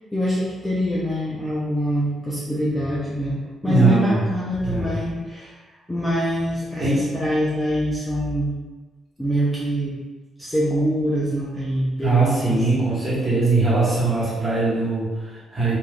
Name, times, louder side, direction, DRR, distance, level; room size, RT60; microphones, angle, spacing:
voice 1, 0.1-5.6 5.9-8.6 9.2-10.0 10.4-12.8, equal, 5° left, -8 dB, 0.4 m, -24 dB
voice 2, 3.6-4.2 4.6-4.9 6.8-7.0 12.0-15.7, right 3 dB, 20° right, -9 dB, 1.0 m, -21 dB
3.2 x 2.2 x 2.4 m, 1.3 s
cardioid pair, 160°, 0 cm